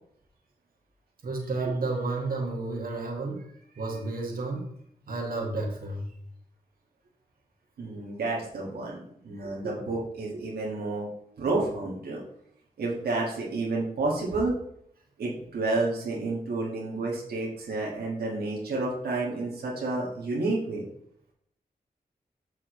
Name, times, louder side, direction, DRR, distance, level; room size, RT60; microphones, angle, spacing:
voice 1, 1.2-3.5 3.7-4.7 5.1-6.1 9.4-9.5, right 3 dB, 65° right, -1 dB, 1.7 m, -31 dB
voice 2, 7.8-11.1 11.4-12.2 12.8-14.5 15.2-20.9, right 2 dB, 90° right, -4 dB, 1.7 m, -30 dB
6.8 x 6.2 x 3.1 m, 0.70 s
cardioid pair, 45°, 16 cm